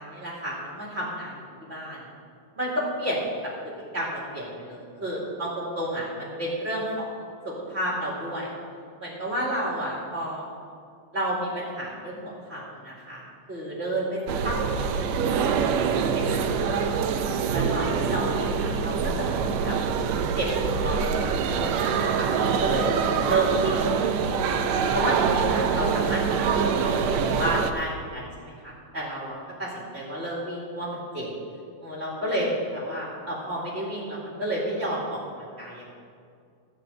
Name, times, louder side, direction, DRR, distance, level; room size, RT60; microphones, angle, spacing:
voice 1, 0.0-2.1 2.6-3.3 3.9-7.1 7.4-8.5 9.0-10.4 11.1-13.2 13.5-15.8 16.1-17.1 17.5-19.8 20.3-23.0 23.3-23.9 24.9-31.3 31.8-36.0, right 1 dB, 25° right, -5 dB, 2.2 m, -31 dB
sound 1, 14.3-27.7, right 6 dB, 80° right, 1.9 m, -25 dB
14.0 x 5.1 x 8.0 m, 2.3 s
omnidirectional pair, 3.3 m